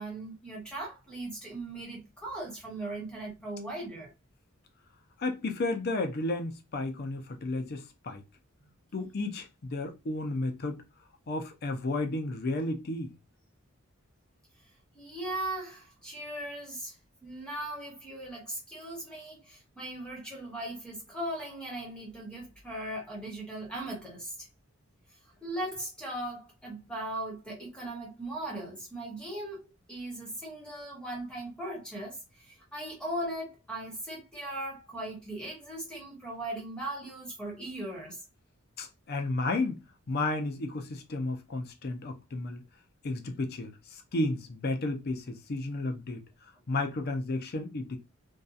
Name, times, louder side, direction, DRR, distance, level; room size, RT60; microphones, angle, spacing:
voice 1, 0.0-4.1 14.9-17.0 17.2-24.5 25.1-38.2, right 1 dB, 5° left, 0.8 m, -38 dB
voice 2, 5.2-8.2 8.9-10.8 11.3-13.1 38.8-39.8 40.1-42.6 43.0-46.2 46.7-48.0, left 2 dB, 50° left, 0.5 m, -32 dB
2.7 x 2.3 x 2.3 m
head